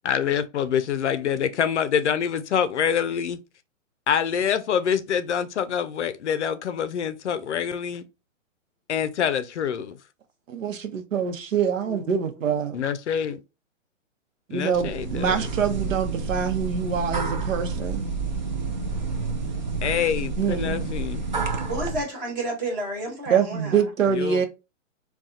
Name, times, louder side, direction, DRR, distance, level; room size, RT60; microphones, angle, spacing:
voice 1, 0.0-3.4 4.1-8.0 8.9-10.0 12.7-13.4 14.5-15.5 19.8-21.3 24.1-24.5, left 8 dB, 60° left, 0.5 m, -26 dB
voice 2, 10.5-12.8 14.5-18.1 20.4-20.8 23.3-24.5, right 7 dB, 75° right, 0.9 m, -25 dB
voice 3, 11.8-12.2 21.7-23.9, right 2 dB, 15° right, 0.7 m, -31 dB
sound 1, 14.7-22.0, right 4 dB, 40° right, 0.4 m, -29 dB
4.1 x 2.3 x 2.3 m
hypercardioid pair, 170°, 39 cm